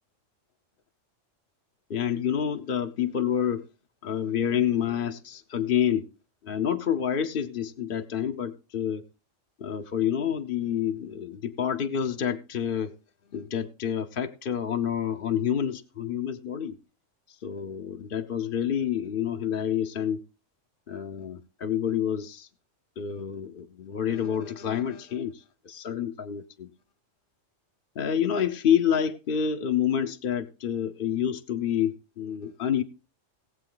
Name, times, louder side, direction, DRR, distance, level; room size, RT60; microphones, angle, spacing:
voice 1, 1.9-3.6 4.0-6.1 6.4-9.0 9.6-12.9 13.3-16.8 17.3-20.2 20.9-22.5 23.0-26.7 28.0-32.8, left 9 dB, 50° left, 0.8 m, -28 dB
18.5 x 8.0 x 3.9 m
omnidirectional pair, 1.3 m